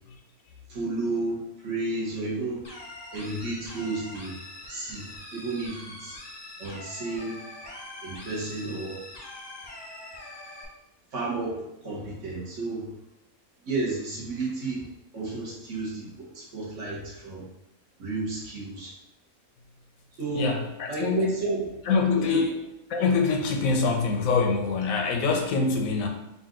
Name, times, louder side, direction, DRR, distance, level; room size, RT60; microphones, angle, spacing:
voice 1, 0.7-2.6 3.1-4.4 4.7-5.1 5.3-6.2 6.6-7.4 8.0-9.0 11.1-12.9 13.7-14.8 15.1-17.5 18.0-18.9 20.2-20.5 20.9-21.7 22.3-22.4, right 3 dB, 65° right, -5 dB, 1.5 m, -32 dB
sound 1, 2.6-10.6, left 1 dB, 25° left, 0.5 m, -43 dB
voice 2, 20.3-21.4 21.9-22.6 22.9-26.1, left 4 dB, 80° left, 3 dB, 1.1 m, -25 dB
4.0 x 2.6 x 3.7 m, 0.89 s
omnidirectional pair, 1.4 m